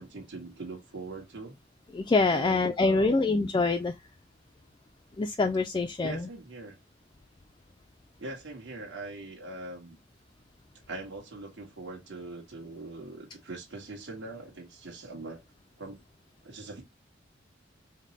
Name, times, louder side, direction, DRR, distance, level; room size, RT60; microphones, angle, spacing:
voice 1, 0.0-1.6 2.3-3.3 6.0-6.8 8.2-10.0 10.9-15.4 15.8-16.0 16.4-16.8, right 2 dB, 70° right, 1.5 m, -41 dB
voice 2, 1.9-3.9 5.2-6.3, left 3 dB, 25° left, 0.3 m, -25 dB
5.1 x 2.1 x 3.9 m
head